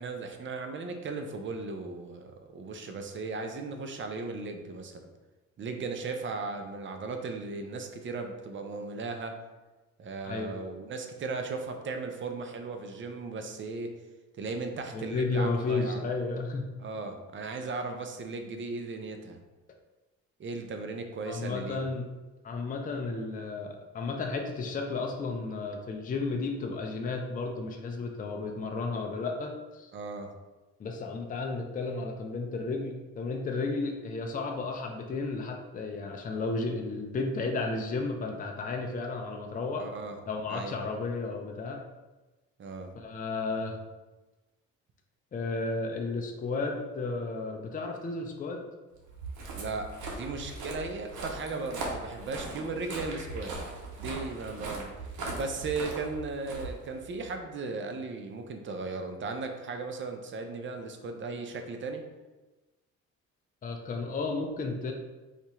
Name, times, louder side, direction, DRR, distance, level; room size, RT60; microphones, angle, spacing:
voice 1, 0.0-5.1 5.6-9.4 10.0-13.9 14.4-16.0 16.8-19.4 20.4-21.8 29.9-30.3 39.8-40.2 40.5-40.8 42.6-42.9 49.5-53.6 54.0-54.9 55.3-62.0, right 3 dB, 40° right, 5 dB, 0.5 m, -36 dB
voice 2, 14.9-16.6 21.2-22.1 22.4-29.9 30.8-39.9 40.3-41.8 43.0-43.8 45.3-48.6 63.6-64.9, left 3 dB, 30° left, 2 dB, 0.5 m, -33 dB
Walk footsteps, 49.0-57.3, right 2 dB, 85° right, 0.9 m, -39 dB
2.7 x 2.5 x 4.2 m, 1.1 s
cardioid pair, 90°, 30 cm